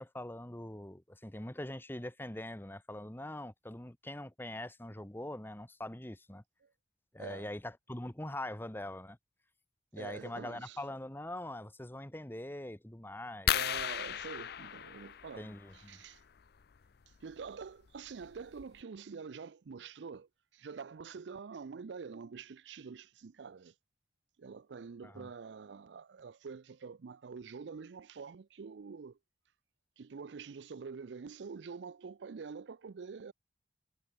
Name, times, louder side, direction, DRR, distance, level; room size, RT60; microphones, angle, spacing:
voice 1, 0.0-6.4 7.1-9.2 9.9-13.5 15.4-16.0 25.0-25.3, left 1 dB, 10° left, 1.4 m, -43 dB
voice 2, 9.9-10.8 13.5-16.2 17.2-23.7 24.4-29.2 30.0-33.3, right 5 dB, 80° right, 0.5 m, -46 dB
sound 1, 13.5-15.8 17.5-17.6 18.2-18.3 18.6-18.8, left 10 dB, 60° left, 0.5 m, -35 dB
head